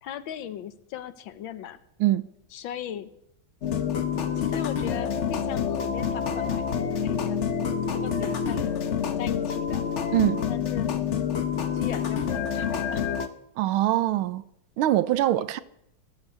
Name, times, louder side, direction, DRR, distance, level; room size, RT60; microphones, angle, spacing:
voice 1, 0.0-1.8 2.5-3.1 4.4-8.7 9.2-9.8 10.5-11.0 11.7-13.1 15.4-15.5, left 10 dB, 70° left, 1.6 m, -38 dB
sound 1, 3.6-13.3, left 7 dB, 45° left, 1.0 m, -27 dB
voice 2, 10.1-10.4 13.6-14.4 14.8-15.6, right 14 dB, 85° right, 1.6 m, -23 dB
17.0 x 8.2 x 8.3 m
omnidirectional pair, 2.2 m